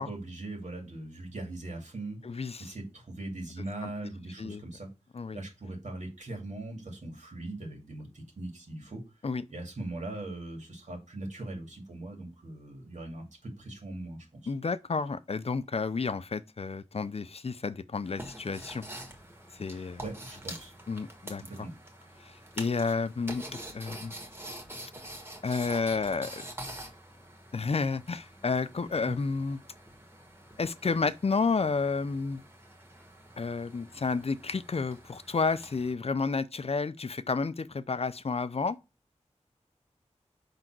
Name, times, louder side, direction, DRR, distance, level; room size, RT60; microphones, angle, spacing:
voice 1, 0.0-4.9 5.3-9.0 9.5-14.5 19.7-20.7 21.4-21.7, right 2 dB, 80° right, 2.5 m, -40 dB
voice 2, 2.2-2.7 3.8-3.9 4.4-4.6 5.1-5.4 9.2-9.4 14.5-18.9 19.5-20.0 20.9-21.4 22.2-23.4 23.7-24.1 25.4-26.4 27.5-29.6 30.6-32.4 33.4-38.8, left 4 dB, 55° left, 0.5 m, -31 dB
sound 1, 18.0-35.9, right 1 dB, 20° right, 1.6 m, -46 dB
5.5 x 3.9 x 6.0 m
wide cardioid pair, 75°, 12 cm